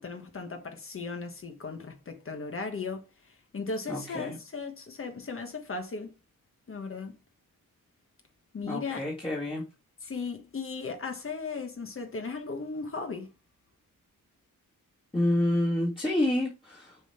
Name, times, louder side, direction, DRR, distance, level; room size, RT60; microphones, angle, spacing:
voice 1, 0.0-6.1 6.7-7.1 8.5-9.0 10.0-13.3, left 4 dB, 40° left, 1.3 m, -37 dB
voice 2, 3.9-4.4 8.6-9.7 15.1-17.0, left 1 dB, 15° left, 1.8 m, -28 dB
6.9 x 4.0 x 4.3 m
wide cardioid pair, 140°, 32 cm